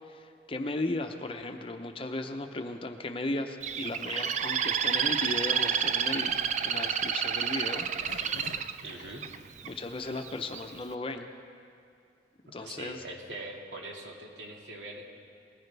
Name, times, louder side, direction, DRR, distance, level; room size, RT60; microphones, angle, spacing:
voice 1, 0.1-7.9 9.6-11.3 12.5-13.0, left 2 dB, 30° left, 6 dB, 0.7 m, -36 dB
Bird, 3.6-9.7 10.2-10.6, right 8 dB, 40° right, 0.4 m, -29 dB
Zipper (clothing), 5.8-9.8 10.3-10.4 10.6-10.7 10.9-11.2, left 3 dB, 75° left, 0.6 m, -50 dB
voice 2, 8.8-9.2 12.5-15.1, right 1 dB, 75° right, 0 dB, 2.0 m, -42 dB
20.0 x 15.0 x 3.4 m, 2.3 s
head